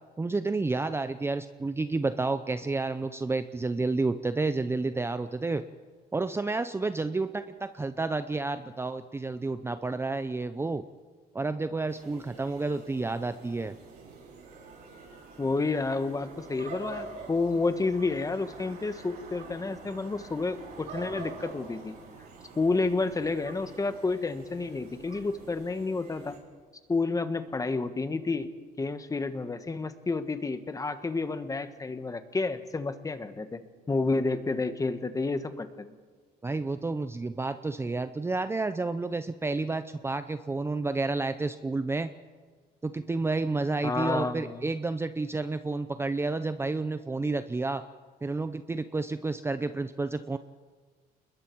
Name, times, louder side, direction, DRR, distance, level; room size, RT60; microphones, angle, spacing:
voice 1, 0.2-5.6 6.1-10.8 11.3-13.8 36.4-42.1 42.8-47.8 48.2-50.4, right 3 dB, 15° right, 10 dB, 0.6 m, -30 dB
sound 1, 11.9-26.4, right 5 dB, 70° right, 6.0 m, -46 dB
voice 2, 15.4-21.9 22.6-26.4 26.9-28.5 28.8-33.6 33.9-35.9 43.8-44.7, left 3 dB, 20° left, 10 dB, 1.3 m, -30 dB
28.5 x 21.5 x 4.6 m, 1.5 s
cardioid pair, 110°, 17 cm